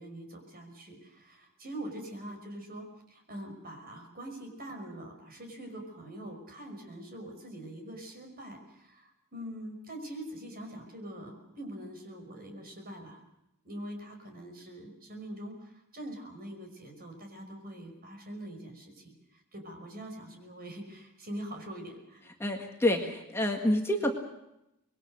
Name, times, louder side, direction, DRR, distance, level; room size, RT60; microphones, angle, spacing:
voice 1, 0.0-13.2 13.6-22.3, right 1 dB, 45° right, 4 dB, 5.5 m, -44 dB
voice 2, 22.4-24.2, left 1 dB, 10° left, 2 dB, 1.8 m, -28 dB
25.5 x 21.5 x 6.5 m, 0.86 s
head